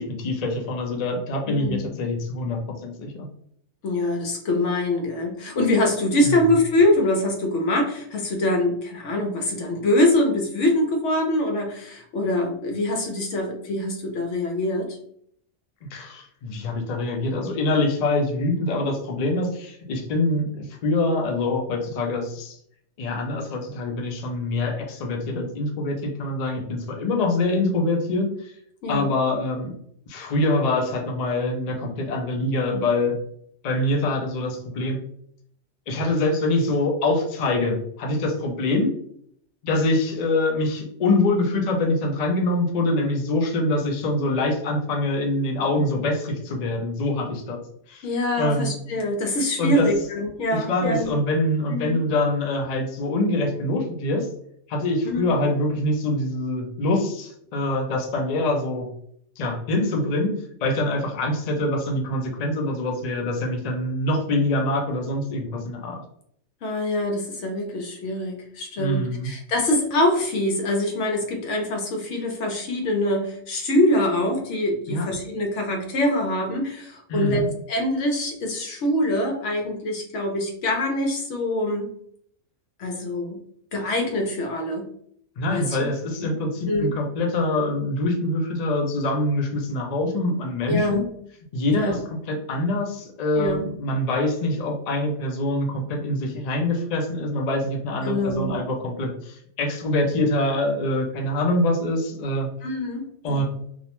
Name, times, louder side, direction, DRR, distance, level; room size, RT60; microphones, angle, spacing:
voice 1, 0.0-3.3 6.2-6.4 15.9-22.6 23.0-28.5 28.9-29.7 30.1-33.1 33.6-35.0 35.9-38.9 39.6-47.6 47.9-48.1 48.4-48.7 49.6-49.9 50.5-54.3 54.7-58.9 59.4-60.3 60.6-66.0 68.8-69.3 74.9-75.1 77.1-77.5 85.4-91.1 91.5-102.5 103.2-103.4, left 2 dB, 60° left, 2 dB, 0.4 m, -24 dB
voice 2, 1.5-1.8 3.8-15.0 28.8-29.1 48.0-51.2 51.7-52.0 55.0-55.3 66.6-81.9 82.8-83.4 83.7-84.8 85.5-85.9 86.2-86.3 86.6-86.9 90.7-91.0 91.7-92.0 93.4-93.6 98.0-98.5 102.6-103.4, left 1 dB, 75° left, 2 dB, 0.9 m, -24 dB
2.4 x 2.1 x 2.9 m, 0.68 s
omnidirectional pair, 1.2 m